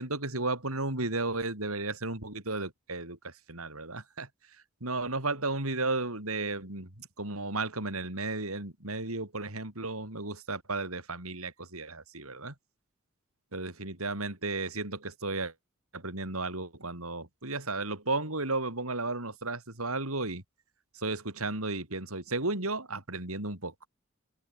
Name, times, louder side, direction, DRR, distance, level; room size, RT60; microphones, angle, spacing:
voice 1, 0.0-4.3 4.8-12.5 13.5-15.5 15.9-20.4 20.9-23.9, right 2 dB, 85° right, 6.5 m, -34 dB
head